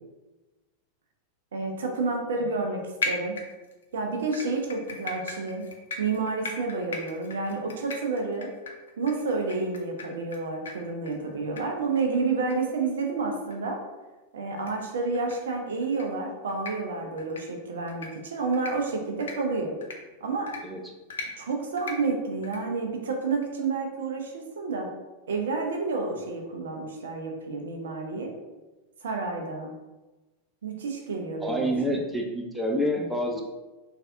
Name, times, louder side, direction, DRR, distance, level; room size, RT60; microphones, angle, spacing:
voice 1, 1.5-3.4 3.9-5.7 6.0-8.5 9.0-13.8 14.3-19.7 20.2-20.5 21.4-24.9 25.3-28.3 29.0-29.7 30.6-32.0, right 3 dB, 65° right, 2 dB, 0.4 m, -30 dB
sound 1, 3.0-3.8 4.3-10.4 10.6-10.7 11.0-11.2 11.6-11.7 11.9-12.0 12.5-12.6 12.9-13.0 13.5-13.6 14.6-14.7 15.1-15.3 15.8-16.0 16.5-16.7 17.2-17.4 17.9-18.1 18.5-18.7 19.2-19.3 19.8-19.9 20.5-20.6 21.1-21.3 21.8-21.9 22.4-22.6, left 4 dB, 65° left, 0.4 m, -36 dB
voice 2, 31.4-33.4, equal, 5° right, 0 dB, 0.4 m, -28 dB
3.4 x 2.4 x 2.4 m, 1.1 s
figure-of-eight pair, 90°, 0 cm